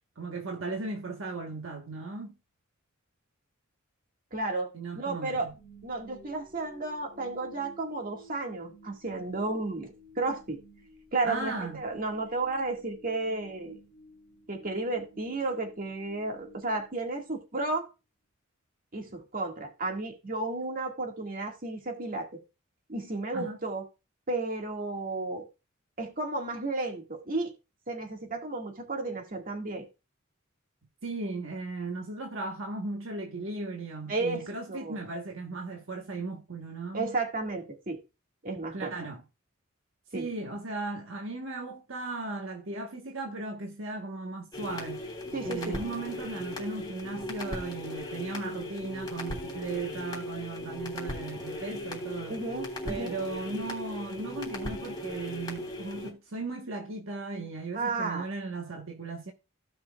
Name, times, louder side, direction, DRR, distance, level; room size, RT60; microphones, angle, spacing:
voice 1, 0.2-2.4 4.7-5.5 11.2-11.8 23.3-23.6 31.0-37.1 38.7-39.2 40.1-45.1 45.4-52.4 52.8-59.3, right 3 dB, 70° right, 1.4 m, -37 dB
voice 2, 4.3-4.7 5.0-5.5 5.8-10.6 11.1-13.8 14.5-17.9 18.9-22.4 22.9-23.9 24.3-25.5 26.0-27.5 27.9-29.9 34.1-35.0 36.9-38.0 38.4-39.0 40.1-40.3 45.3-45.8 52.3-53.1 57.7-58.3, right 2 dB, 45° right, 2.0 m, -33 dB
sound 1, 5.5-17.6, right 1 dB, 5° right, 4.6 m, -54 dB
sound 2, 44.5-56.1, left 1 dB, 20° left, 3.0 m, -38 dB
16.0 x 6.0 x 2.4 m
head